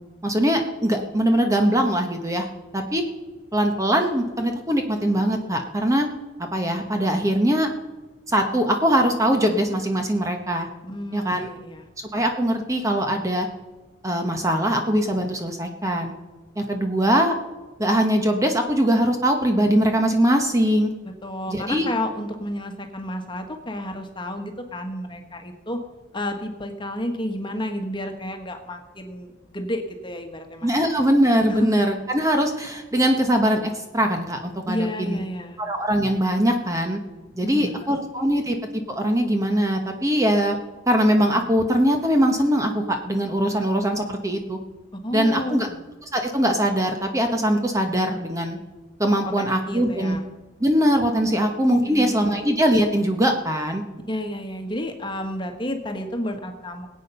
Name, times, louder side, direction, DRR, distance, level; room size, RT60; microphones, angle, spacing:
voice 1, 0.2-2.5 2.7-3.0 3.5-6.1 6.4-7.7 8.3-10.7 11.1-11.5 12.1-13.5 14.0-16.1 16.6-17.3 17.8-20.9 21.5-21.9 30.6-35.2 35.6-37.0 37.3-38.6 38.9-40.6 40.9-44.6 45.1-45.7 46.1-48.6 49.0-50.2 50.6-53.8, equal, 15° right, 4 dB, 1.1 m, -21 dB
voice 2, 10.8-11.9 21.0-25.8 26.1-30.7 31.5-31.7 34.7-35.6 37.4-37.9 38.3-38.5 45.0-45.8 49.4-50.2 51.3-51.5 51.8-52.4 54.1-56.9, left 1 dB, 25° left, 4 dB, 1.5 m, -31 dB
21.0 x 8.6 x 5.6 m, 1.2 s
head